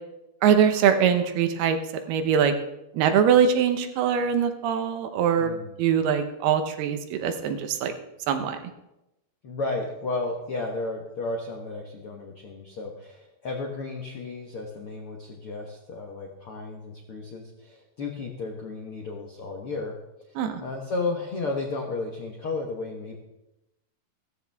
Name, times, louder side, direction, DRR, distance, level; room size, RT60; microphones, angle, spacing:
voice 1, 0.4-1.8 2.1-2.5 2.9-5.5 5.8-7.9 8.3-8.6 20.4-20.6, right 8 dB, 75° right, 7 dB, 2.9 m, -22 dB
voice 2, 5.4-5.7 9.4-19.9 20.6-23.2, left 3 dB, 80° left, 1 dB, 1.2 m, -33 dB
15.5 x 14.5 x 3.5 m, 0.92 s
omnidirectional pair, 4.7 m